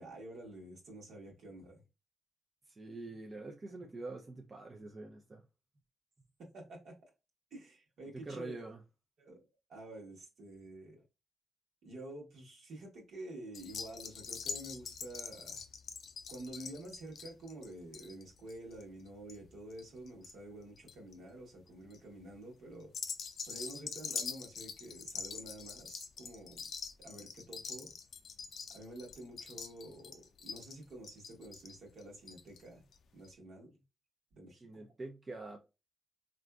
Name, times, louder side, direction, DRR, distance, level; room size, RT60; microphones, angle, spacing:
voice 1, 0.0-1.8 6.4-7.1 7.5-8.5 9.2-9.4 9.7-11.0 11.8-15.6 16.3-22.9 23.5-26.6 27.0-27.9 28.7-32.8 33.1-33.8 34.3-34.8, right 1 dB, 70° right, 1.2 m, -49 dB
voice 2, 2.7-5.4 8.1-8.8 34.6-35.6, right 2 dB, 40° right, 0.6 m, -45 dB
sound 1, 13.5-20.3 20.6-21.1 21.7-22.0 22.8-32.6 32.9-33.0 33.2-33.3, left 6 dB, 70° left, 0.4 m, -44 dB
3.6 x 2.5 x 2.3 m
supercardioid pair, 45°, 0 cm